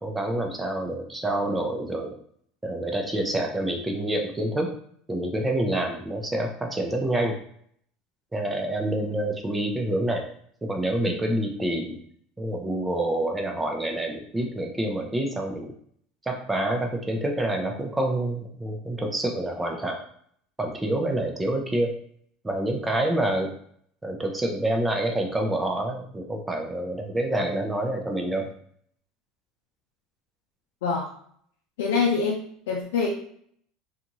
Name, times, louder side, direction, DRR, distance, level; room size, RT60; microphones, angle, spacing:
voice 1, 0.0-2.1 2.6-4.7 5.1-7.4 8.3-10.3 10.6-12.0 12.4-15.7 16.3-20.0 20.6-21.9 22.4-23.6 24.0-28.5, right 1 dB, 15° right, 2 dB, 0.6 m, -27 dB
voice 2, 30.8-31.1 31.8-33.1, left 5 dB, 80° left, -2 dB, 0.4 m, -25 dB
2.5 x 2.4 x 2.9 m, 0.62 s
supercardioid pair, 95°, 0 cm